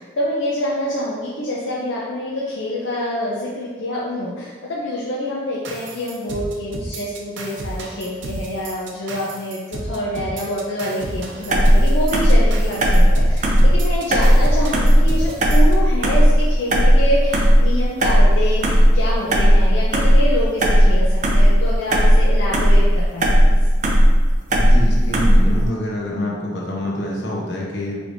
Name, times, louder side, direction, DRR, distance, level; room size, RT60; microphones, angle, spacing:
voice 1, 0.0-23.6, left 1 dB, 85° left, -5 dB, 0.6 m, -26 dB
sound 1, 5.6-15.7, right 2 dB, 85° right, 0.6 m, -33 dB
sound 2, 11.5-25.7, equal, 40° right, 0.5 m, -15 dB
voice 2, 24.6-28.0, left 1 dB, 70° left, -3 dB, 0.9 m, -26 dB
4.8 x 3.4 x 2.6 m, 1.5 s
head